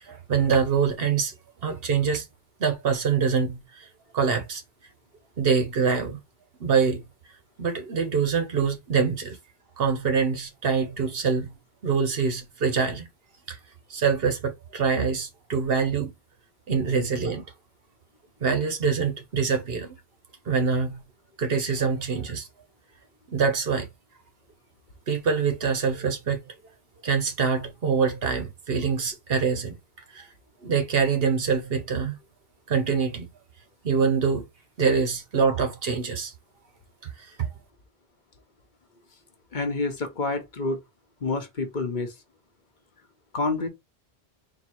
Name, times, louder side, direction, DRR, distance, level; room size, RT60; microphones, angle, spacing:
voice 1, 0.0-1.3 1.6-2.3 2.6-3.9 4.1-4.6 5.4-6.2 6.6-7.0 7.6-9.4 9.8-11.6 11.8-13.0 13.5-13.6 13.9-16.1 16.7-17.4 18.4-19.9 20.5-21.0 21.4-22.5 23.3-23.9 25.1-26.5 27.0-29.8 30.1-30.3 30.6-32.2 32.7-33.3 33.8-34.5 34.8-36.3 37.0-37.5, right 5 dB, 65° right, 1.1 m, -25 dB
voice 2, 39.5-40.8 41.2-42.1 43.3-43.7, left 3 dB, 50° left, 0.9 m, -28 dB
3.9 x 2.3 x 4.5 m
omnidirectional pair, 1.1 m